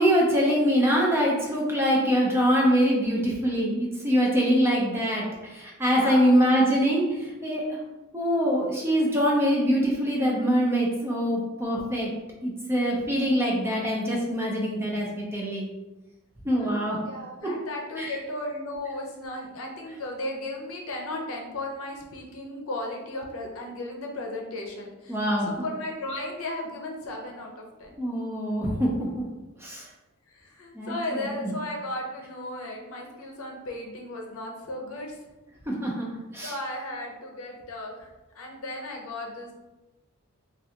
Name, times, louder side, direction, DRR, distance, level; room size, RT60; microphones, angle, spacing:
voice 1, 0.0-7.8 8.1-12.1 12.4-15.7 16.4-17.1 17.4-17.6 17.9-18.2 19.9-20.0 25.1-25.6 28.0-29.3 29.6-29.9 30.7-31.5 35.7-36.1 36.3-36.6, equal, 10° right, -3 dB, 0.5 m, -24 dB
voice 2, 5.9-6.3 16.6-28.0 30.3-35.2 36.4-38.1 38.3-39.5, left 1 dB, 75° left, 0 dB, 0.6 m, -35 dB
3.3 x 2.4 x 2.8 m, 1.1 s
head